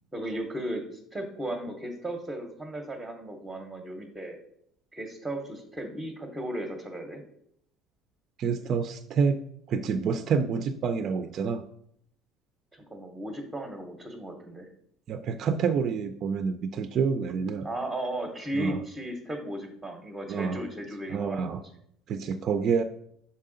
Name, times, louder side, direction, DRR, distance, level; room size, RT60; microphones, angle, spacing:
voice 1, 0.1-4.4 4.9-7.2 12.7-14.7 17.6-21.5, right 1 dB, 10° right, 4 dB, 0.6 m, -35 dB
voice 2, 8.4-9.4 9.7-11.6 15.1-17.7 18.5-18.8 20.3-20.6 21.1-21.6 22.1-22.8, right 6 dB, 40° right, 9 dB, 0.3 m, -28 dB
6.5 x 4.2 x 3.7 m, 0.70 s
cardioid pair, 165°, 0 cm